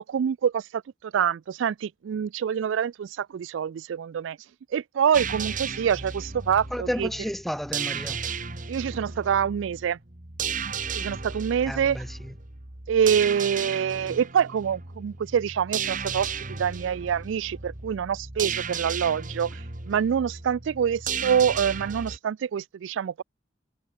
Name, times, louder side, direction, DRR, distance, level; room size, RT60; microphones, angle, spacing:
voice 1, 0.0-4.4 4.7-7.1 8.7-10.0 10.9-12.0 12.9-23.2, right 8 dB, 85° right, 0.3 m, -26 dB
sound 1, 5.1-22.2, right 6 dB, 45° right, 2.0 m, -34 dB
voice 2, 6.7-8.2 11.6-12.3 14.1-14.2, equal, ahead, 0.8 m, -32 dB
head